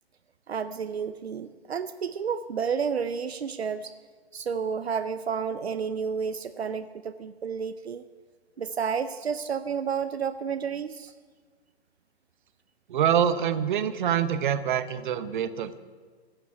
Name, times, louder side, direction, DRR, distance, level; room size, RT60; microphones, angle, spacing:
voice 1, 0.5-3.9 4.3-8.0 8.6-11.1, right 6 dB, 75° right, 11 dB, 0.7 m, -31 dB
voice 2, 12.9-15.8, right 9 dB, 50° right, 12 dB, 1.0 m, -25 dB
15.0 x 7.2 x 9.3 m, 1.6 s
figure-of-eight pair, 125°, 32 cm